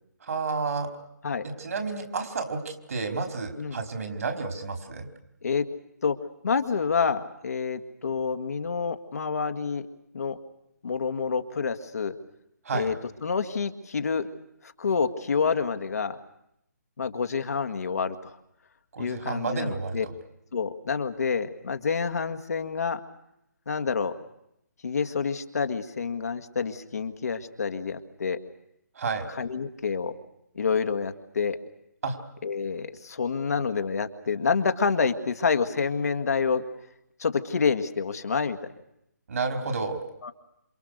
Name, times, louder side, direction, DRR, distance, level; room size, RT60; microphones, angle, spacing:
voice 1, 0.2-0.9 1.4-5.1 12.6-12.9 18.9-20.1 28.9-29.3 32.0-32.2 39.3-40.0, right 4 dB, 55° right, 6 dB, 4.7 m, -31 dB
voice 2, 6.4-9.8 10.1-10.4 10.8-12.2 12.7-12.9 13.2-14.3 14.8-16.2 17.0-18.4 19.0-20.1 20.5-23.0 23.7-24.1 24.8-28.4 29.4-30.1 30.6-31.6 32.4-36.6 37.2-38.6 40.2-40.3, left 5 dB, 60° left, 7 dB, 2.0 m, -28 dB
27.5 x 27.0 x 6.7 m, 0.80 s
figure-of-eight pair, 145°, 10 cm